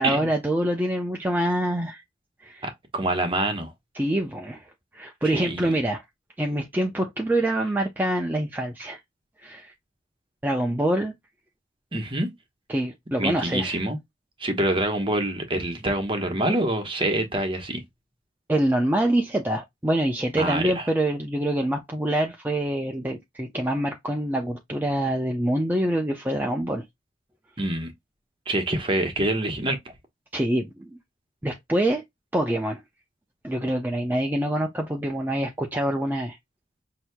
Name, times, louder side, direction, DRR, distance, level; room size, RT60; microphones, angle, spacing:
voice 1, 0.0-2.0 2.4-2.7 3.9-4.7 4.9-6.0 6.4-9.0 9.4-9.7 10.4-11.1 12.7-13.8 18.5-26.8 30.3-30.9 31.4-32.0 32.3-32.8 33.4-36.4, right 1 dB, 10° right, 0.6 m, -25 dB
voice 2, 2.6-3.7 5.2-5.8 11.9-12.3 13.2-14.0 14.4-17.8 20.4-20.9 27.6-27.9 28.5-29.8, right 1 dB, 30° right, 1.2 m, -26 dB
6.1 x 2.9 x 2.2 m
head